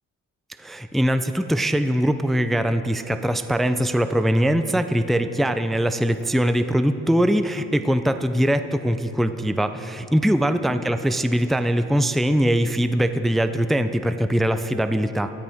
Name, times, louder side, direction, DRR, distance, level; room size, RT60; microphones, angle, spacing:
voice 1, 0.6-15.3, equal, ahead, 9 dB, 0.5 m, -22 dB
18.5 x 13.0 x 3.6 m, 3.0 s
cardioid pair, 90°, 30 cm